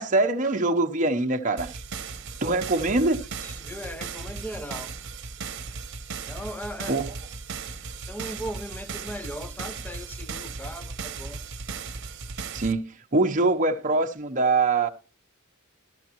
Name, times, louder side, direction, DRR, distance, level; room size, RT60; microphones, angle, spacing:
voice 1, 0.0-1.7 2.4-3.2 6.9-7.1 12.5-14.9, right 3 dB, 35° right, 0.8 m, -23 dB
sound 1, 1.6-12.7, right 5 dB, 60° right, 1.0 m, -37 dB
voice 2, 3.4-5.0 6.3-7.0 8.1-11.4, equal, 10° left, 0.6 m, -38 dB
13.5 x 12.5 x 3.0 m
head